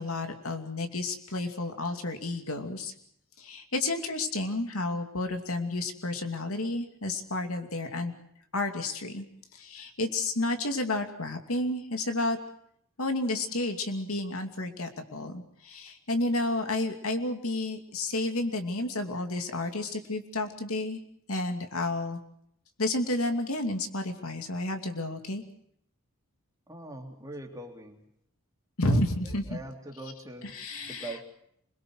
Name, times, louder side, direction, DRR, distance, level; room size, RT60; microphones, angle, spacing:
voice 1, 0.0-2.9 3.4-8.1 8.5-9.2 9.5-12.4 13.0-21.0 21.3-22.2 22.8-25.4 28.8-29.6 30.4-31.2, left 2 dB, 75° left, 5 dB, 2.7 m, -31 dB
voice 2, 26.7-28.0 28.9-29.0 29.5-30.5 30.9-31.2, right 2 dB, 15° right, 2 dB, 3.1 m, -42 dB
27.5 x 22.0 x 6.4 m, 0.72 s
head